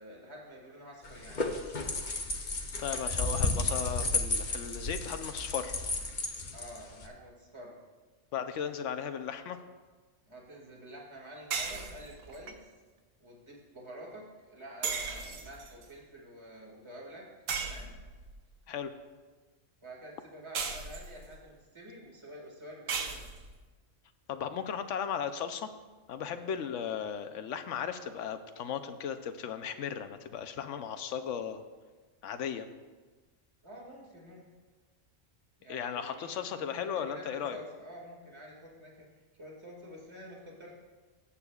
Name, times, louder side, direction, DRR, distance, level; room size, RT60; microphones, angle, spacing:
voice 1, 0.0-1.5 6.5-7.8 10.3-12.7 13.2-17.3 17.6-18.0 19.8-23.3 33.6-34.4 35.6-40.7, equal, 20° right, -3 dB, 2.1 m, -48 dB
sound 1, 1.0-7.1, left 2 dB, 40° left, 0.9 m, -33 dB
voice 2, 2.8-5.7 8.3-9.6 18.7-18.9 24.3-25.7 26.1-31.6 32.2-32.7 35.7-37.6, left 8 dB, 75° left, 9 dB, 1.0 m, -36 dB
sound 2, 11.5-12.5 14.8-15.8 17.5-18.3 20.5-21.4 22.9-23.6, right 5 dB, 85° right, 1.2 m, -36 dB
18.5 x 8.6 x 2.4 m, 1.4 s
omnidirectional pair, 1.3 m